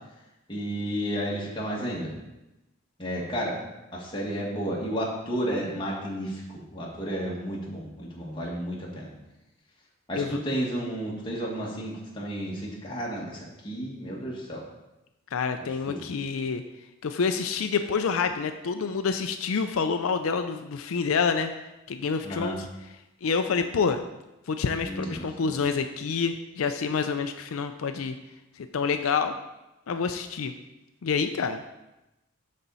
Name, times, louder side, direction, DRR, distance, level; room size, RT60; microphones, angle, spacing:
voice 1, 0.5-2.1 3.0-3.6 3.9-6.4 6.7-9.1 10.1-14.6 15.9-16.0 22.2-22.6 24.8-25.5, equal, 25° left, -4 dB, 1.7 m, -32 dB
voice 2, 15.3-16.6 17.0-21.5 21.9-22.7 23.2-24.0 24.5-28.1 28.6-29.4 29.9-30.5 31.0-31.6, left 5 dB, 85° left, 7 dB, 0.4 m, -27 dB
11.5 x 4.3 x 4.0 m, 0.96 s
head